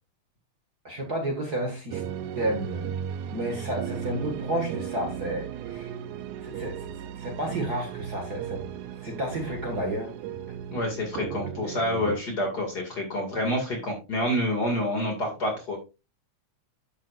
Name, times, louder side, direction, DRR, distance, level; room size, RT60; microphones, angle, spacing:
voice 1, 0.8-2.0 2.4-2.9 3.3-6.0 6.4-6.8 7.2-8.7 9.0-10.1, right 1 dB, 35° right, 2.0 m, -31 dB
sound 1, 1.9-12.2, right 9 dB, 85° right, 2.2 m, -36 dB
voice 2, 10.7-15.8, left 1 dB, 35° left, 2.6 m, -28 dB
11.0 x 7.7 x 2.5 m
omnidirectional pair, 3.4 m